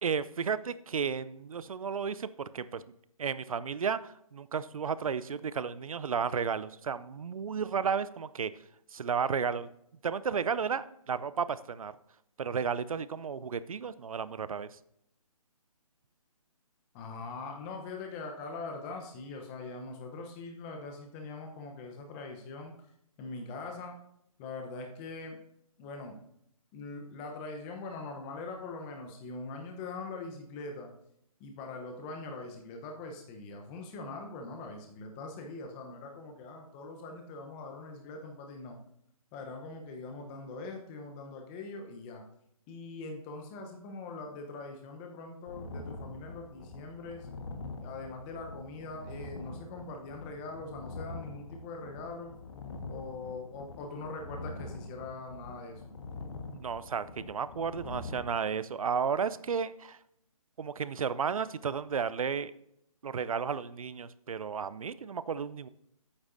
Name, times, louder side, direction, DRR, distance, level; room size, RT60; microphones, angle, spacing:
voice 1, 0.0-2.8 3.2-8.5 8.9-9.7 10.0-11.9 12.4-14.7 56.5-60.0 60.6-62.5 63.0-65.7, right 6 dB, 70° right, 16 dB, 0.6 m, -33 dB
voice 2, 16.9-22.7 23.2-24.0 24.4-25.4 25.8-26.2 26.7-30.9 31.4-38.8 39.3-42.2 42.7-47.3 47.8-52.4 52.9-55.9, left 3 dB, 15° left, 3 dB, 0.8 m, -42 dB
sound 1, 45.5-58.2, left 3 dB, 50° left, 1.4 m, -44 dB
11.5 x 8.8 x 2.6 m, 0.74 s
hypercardioid pair, 155°, 19 cm